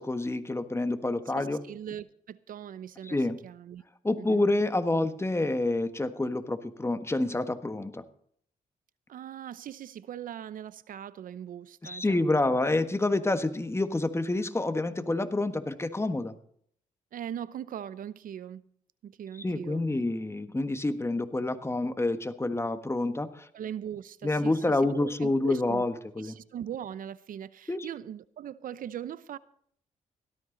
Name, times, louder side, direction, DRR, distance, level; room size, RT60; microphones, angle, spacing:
voice 1, 0.0-1.6 3.0-3.4 4.0-8.0 11.8-16.3 19.4-23.5 24.2-26.3 27.7-27.9, left 2 dB, 15° left, 1.5 m, -28 dB
voice 2, 1.3-3.8 4.2-4.5 9.1-12.6 17.1-18.7 19.0-19.8 23.5-25.9 26.2-29.4, right 9 dB, 70° right, 0.8 m, -40 dB
17.0 x 13.0 x 4.0 m
cardioid pair, 65°, 15 cm